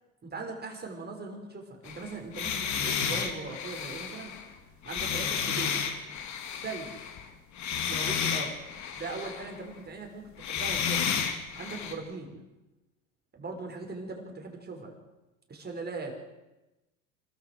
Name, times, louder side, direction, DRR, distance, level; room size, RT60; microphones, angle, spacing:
voice 1, 0.2-4.3 4.8-5.9 6.6-7.0 7.7-8.6 9.0-11.1 11.5-12.4 13.3-14.9 15.5-16.2, right 3 dB, 25° right, 2 dB, 6.2 m, -40 dB
sound 1, 1.8-7.3 7.5-9.6 10.4-11.9, left 7 dB, 50° left, 3.3 m, -32 dB
26.5 x 13.5 x 8.1 m, 1.1 s
hypercardioid pair, 85°, 38 cm